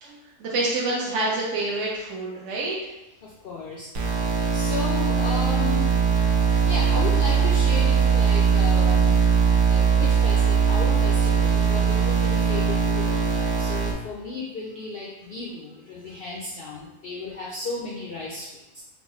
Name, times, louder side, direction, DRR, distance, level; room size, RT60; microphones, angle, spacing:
voice 1, 0.0-2.8, right 2 dB, 65° right, -5 dB, 0.8 m, -27 dB
voice 2, 3.2-3.9 4.2-5.9 6.7-9.1 9.7-18.8, left 3 dB, 80° left, -4 dB, 0.5 m, -34 dB
sound 1, 3.9-13.9, right 6 dB, 85° right, 1.1 m, -20 dB
3.7 x 2.0 x 3.6 m, 0.98 s
omnidirectional pair, 1.5 m